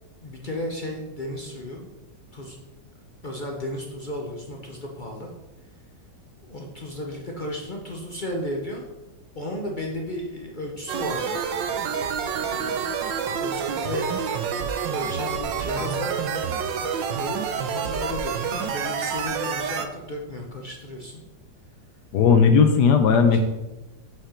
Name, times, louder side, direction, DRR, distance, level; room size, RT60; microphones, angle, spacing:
voice 1, 0.2-1.9 2.3-2.6 3.2-5.3 6.4-8.9 9.3-11.3 12.5-12.9 13.4-14.1 14.9-16.4 17.2-17.4 17.7-21.2 23.3-23.4, left 1 dB, 50° left, 0 dB, 0.5 m, -34 dB
sound 1, 10.9-19.9, right 6 dB, 85° right, 1.4 m, -28 dB
voice 2, 22.1-23.4, left 6 dB, 70° left, 7 dB, 1.2 m, -16 dB
7.6 x 5.0 x 4.4 m, 1.1 s
omnidirectional pair, 2.0 m